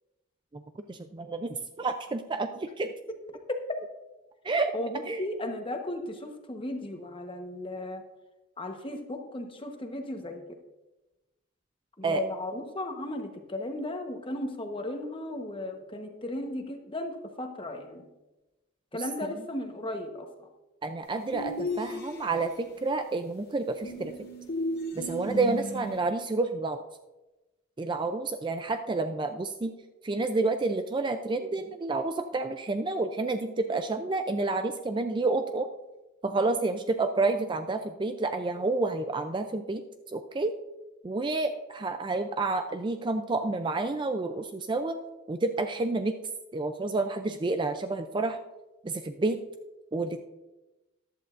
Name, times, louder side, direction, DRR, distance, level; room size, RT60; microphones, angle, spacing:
voice 1, 0.9-2.9 4.4-4.7 5.1-5.2 12.0-12.2 18.9-19.0 20.8-24.1 24.9-26.8 27.8-29.7 30.0-35.7 36.2-40.5 41.0-45.0 45.3-46.2 46.5-48.4 48.8-49.4 49.9-50.2, right 3 dB, 25° right, 7 dB, 0.4 m, -29 dB
voice 2, 4.7-8.0 8.6-10.4 12.0-18.1 18.9-20.5, left 1 dB, 25° left, 4 dB, 1.1 m, -35 dB
sound 1, 21.3-22.6 23.8-26.0, left 1 dB, 55° left, 1.6 m, -35 dB
14.5 x 11.0 x 2.5 m, 1.1 s
head